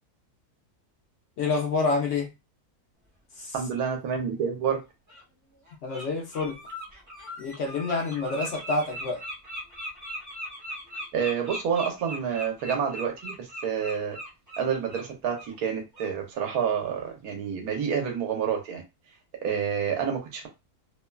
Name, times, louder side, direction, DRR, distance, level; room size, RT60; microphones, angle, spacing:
voice 1, 1.4-2.3 3.4-3.5 5.8-6.6 7.4-9.2, left 3 dB, 65° left, 0.8 m, -28 dB
voice 2, 3.5-4.8 11.1-14.2 14.6-18.8 19.4-20.5, right 7 dB, 75° right, 1.2 m, -28 dB
Bird, 4.2-4.3 5.1-5.2 5.7-6.1 6.3-15.1 15.4-15.5 15.9-16.1, equal, 20° right, 0.5 m, -39 dB
2.9 x 2.1 x 2.2 m
omnidirectional pair, 1.6 m